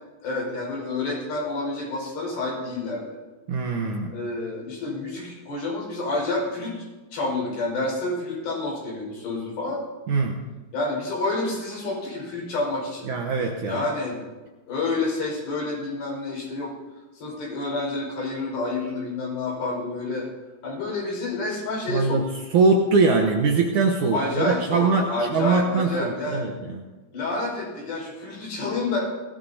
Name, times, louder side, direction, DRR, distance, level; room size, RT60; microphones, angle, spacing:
voice 1, 0.2-3.2 4.1-6.9 7.1-9.8 10.7-13.1 13.6-14.3 14.7-16.7 17.2-20.3 20.6-22.2 24.1-26.5 27.1-29.0, left 2 dB, 70° left, -3 dB, 7.0 m, -29 dB
voice 2, 3.5-4.1 10.1-10.4 13.1-13.9 21.9-26.8, right 4 dB, 70° right, 1 dB, 2.0 m, -22 dB
21.5 x 17.0 x 2.8 m, 1.2 s
omnidirectional pair, 4.6 m